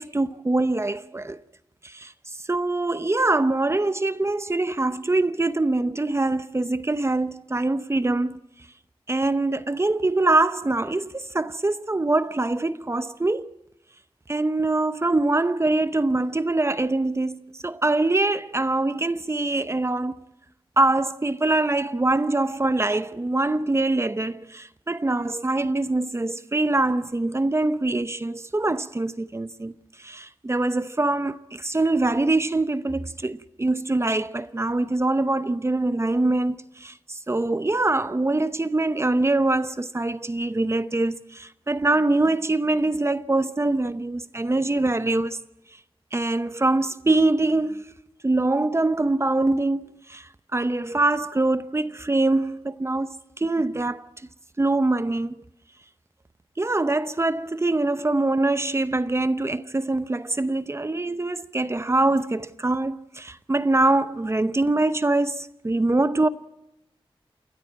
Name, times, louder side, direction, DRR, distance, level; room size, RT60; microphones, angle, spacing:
voice 1, 0.0-1.4 1.8-2.1 2.5-8.4 9.1-13.5 14.3-20.2 20.8-29.7 30.0-45.4 46.1-47.9 48.2-54.1 54.6-55.4 56.6-66.3, right 2 dB, 30° right, 0.8 m, -24 dB
29.0 x 13.5 x 8.7 m
wide cardioid pair, 95°, 10 cm